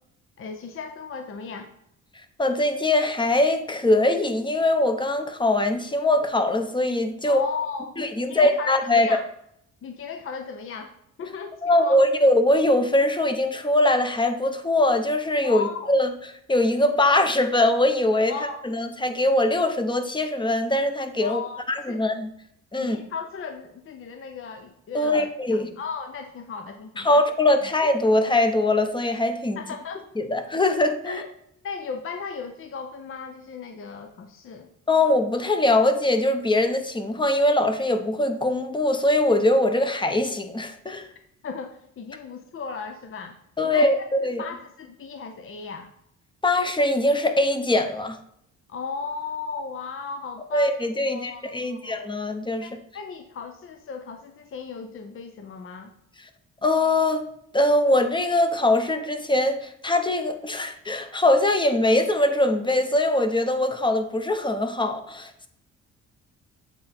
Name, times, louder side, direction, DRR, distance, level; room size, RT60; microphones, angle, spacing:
voice 1, 0.4-1.7 7.3-9.2 9.8-10.9 11.2-12.0 15.4-15.9 18.3-18.6 21.2-22.0 22.8-27.3 27.6-27.7 29.6-30.0 31.1-31.3 31.6-34.7 41.4-43.4 43.6-45.9 48.7-52.0 52.6-55.9, left 5 dB, 45° left, 6 dB, 0.7 m, -36 dB
voice 2, 2.4-7.4 8.0-9.2 11.6-16.1 16.5-18.4 18.6-21.4 21.7-22.3 22.7-23.0 24.9-25.7 27.0-29.6 30.2-31.2 34.9-41.1 43.6-44.5 46.4-48.2 50.5-52.8 56.6-57.2 57.5-65.5, left 1 dB, 15° left, 7 dB, 0.8 m, -22 dB
8.1 x 3.7 x 4.3 m, 0.73 s
cardioid pair, 90°, 30 cm